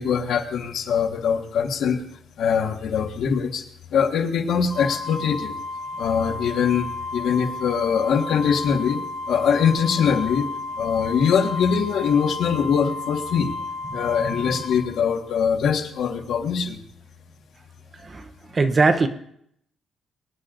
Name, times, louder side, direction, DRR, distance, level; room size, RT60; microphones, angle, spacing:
voice 1, 0.0-2.0 2.4-3.6 3.9-5.5 6.0-10.5 10.7-13.5 13.9-16.8, left 7 dB, 70° left, 3 dB, 1.6 m, -22 dB
Organ, 4.7-15.4, left 3 dB, 30° left, 2.0 m, -33 dB
voice 2, 18.5-19.1, right 3 dB, 25° right, 7 dB, 0.8 m, -20 dB
23.5 x 10.5 x 2.6 m, 0.69 s
cardioid pair, 155°, 0 cm